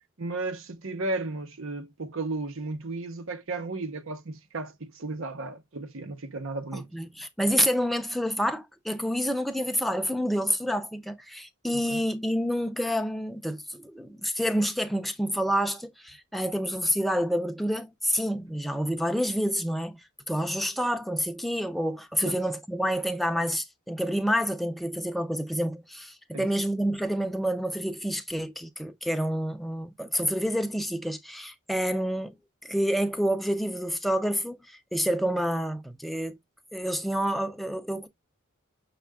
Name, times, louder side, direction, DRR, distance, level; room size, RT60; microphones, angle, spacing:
voice 1, 0.2-6.9 11.9-12.0 22.2-22.4 26.3-26.5, right 2 dB, 70° right, 0.8 m, -34 dB
voice 2, 6.7-20.0 20.3-32.4 32.6-36.4 36.7-38.1, equal, ahead, 0.5 m, -28 dB
6.4 x 2.4 x 3.5 m
head